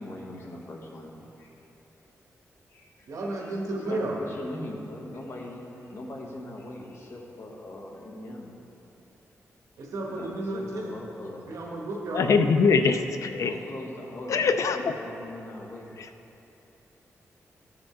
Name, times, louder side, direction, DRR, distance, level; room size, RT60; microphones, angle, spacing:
voice 1, 0.0-1.5 2.7-2.9 3.4-3.5 3.9-8.6 10.1-11.6 13.4-16.0, left 1 dB, 50° left, -1 dB, 1.2 m, -41 dB
voice 2, 3.0-4.2 9.8-10.9 11.5-12.3, right 2 dB, 90° right, -2 dB, 1.3 m, -32 dB
voice 3, 12.1-13.5 14.3-14.9 16.0-16.1, left 5 dB, 70° left, 8 dB, 0.4 m, -23 dB
13.5 x 5.0 x 3.6 m, 3.0 s
wide cardioid pair, 135°, 5 cm